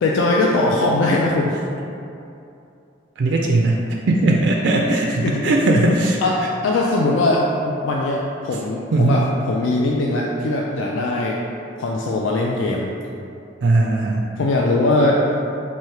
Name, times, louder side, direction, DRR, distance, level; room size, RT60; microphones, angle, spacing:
voice 1, 0.0-1.6 5.2-5.5 6.2-11.4 11.8-12.9 14.4-15.2, left 2 dB, 90° left, -2 dB, 0.3 m, -20 dB
voice 2, 3.2-3.8 4.1-6.2 8.5-8.6 8.9-9.2 13.6-14.3, right 2 dB, 65° right, -1 dB, 0.3 m, -18 dB
3.1 x 2.7 x 4.5 m, 2.7 s
head